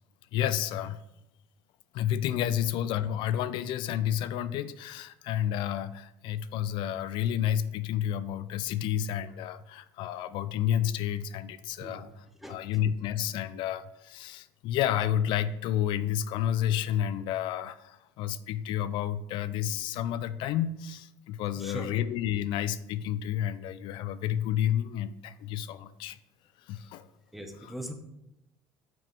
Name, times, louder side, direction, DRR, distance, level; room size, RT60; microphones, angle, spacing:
voice 1, 0.3-1.0 1.9-26.2 26.7-27.0, left 10 dB, 65° left, 15 dB, 0.4 m, -30 dB
voice 2, 21.6-21.9 27.3-27.9, equal, ahead, 5 dB, 0.9 m, -39 dB
6.1 x 5.0 x 4.5 m, 0.86 s
supercardioid pair, 115°, 9 cm